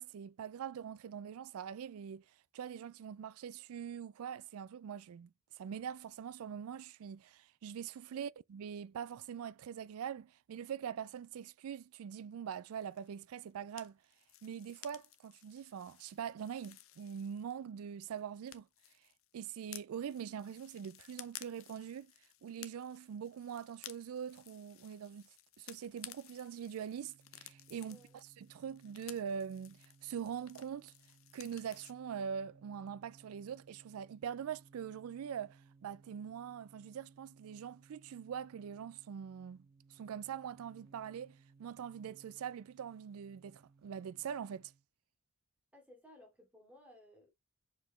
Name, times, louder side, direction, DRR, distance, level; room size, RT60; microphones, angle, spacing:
voice 1, 0.0-2.2 2.5-14.0 14.4-18.7 19.3-22.1 22.4-25.3 25.6-30.9 31.3-39.7 39.9-44.7, right 8 dB, 75° right, 0.3 m, -43 dB
sound 1, 12.8-17.8 18.0-31.9, left 13 dB, 65° left, 0.7 m, -55 dB
sound 2, 26.6-44.8, right 4 dB, 45° right, 1.1 m, -64 dB
voice 2, 45.7-47.3, left 1 dB, 5° right, 2.6 m, -59 dB
6.2 x 5.1 x 3.1 m
head